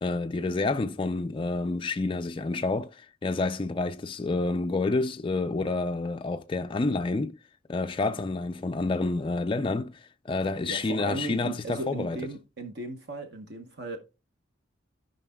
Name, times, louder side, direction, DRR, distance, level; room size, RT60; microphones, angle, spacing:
voice 1, 0.0-7.4 7.7-12.2, left 3 dB, 25° left, 0.3 m, -29 dB
voice 2, 10.7-14.0, right 2 dB, 55° right, 0.9 m, -36 dB
14.5 x 5.2 x 2.2 m
head